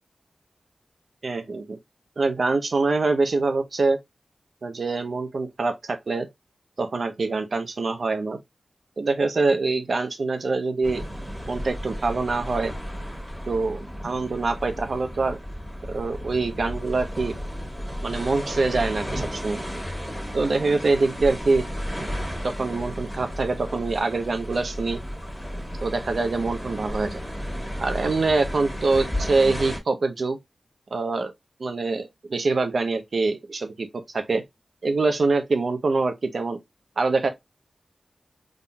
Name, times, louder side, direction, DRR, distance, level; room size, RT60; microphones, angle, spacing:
voice 1, 1.2-1.8 2.2-4.0 4.6-6.3 6.8-8.4 9.0-11.0 11.5-12.7 13.5-15.4 15.9-17.4 18.0-19.6 20.3-21.6 22.4-25.0 25.5-27.2 27.8-30.4 30.9-31.3 31.6-33.9 34.1-34.4 34.8-36.6 37.0-37.3, right 3 dB, 70° right, 0.9 m, -24 dB
sound 1, 10.8-29.8, equal, 5° left, 1.8 m, -33 dB
3.9 x 3.7 x 2.3 m
cardioid pair, 50°, 0 cm